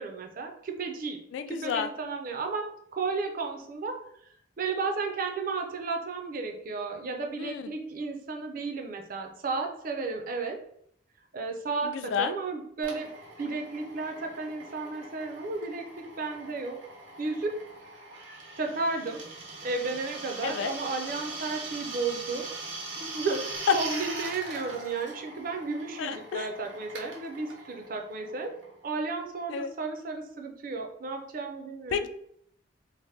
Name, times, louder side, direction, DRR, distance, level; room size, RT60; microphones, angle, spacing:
voice 1, 0.0-1.2 1.5-4.0 4.6-10.6 11.3-13.1 13.4-16.8 17.2-17.6 18.6-19.2 19.6-22.5 23.0-28.5 28.8-32.1, right 4 dB, 50° right, 4 dB, 0.4 m, -33 dB
voice 2, 1.3-1.9 7.4-7.7 11.8-12.3 20.4-20.7 26.0-26.5 29.5-29.7 31.9-32.1, left 6 dB, 90° left, 8 dB, 0.3 m, -31 dB
Drill, 12.8-29.2, right 3 dB, 80° right, 0.7 m, -41 dB
2.8 x 2.1 x 3.2 m, 0.69 s
head